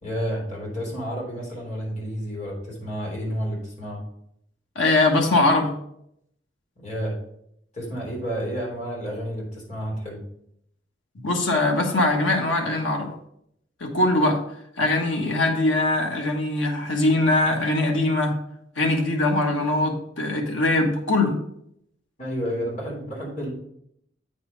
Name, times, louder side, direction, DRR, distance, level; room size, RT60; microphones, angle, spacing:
voice 1, 0.0-4.0 6.8-7.2 7.7-10.2 22.2-23.5, equal, 40° left, -4 dB, 3.5 m, -30 dB
voice 2, 4.7-5.7 11.2-13.1 13.8-14.4 14.8-18.3 18.8-21.3, left 2 dB, 90° left, 1 dB, 1.4 m, -21 dB
8.6 x 4.3 x 5.2 m, 0.74 s
head